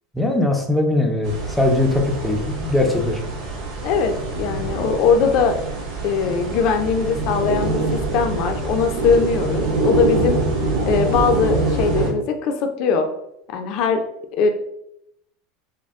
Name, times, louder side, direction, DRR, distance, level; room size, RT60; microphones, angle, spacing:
voice 1, 0.1-3.3, left 2 dB, 5° left, 2 dB, 0.6 m, -20 dB
sound 1, 1.2-12.1, right 2 dB, 45° right, 1.6 m, -24 dB
voice 2, 3.8-5.5 6.0-10.4 10.9-13.1 13.5-14.0 14.4-14.5, left 5 dB, 45° left, 6 dB, 0.6 m, -20 dB
6.3 x 2.2 x 3.6 m, 0.78 s
supercardioid pair, 170°, 0 cm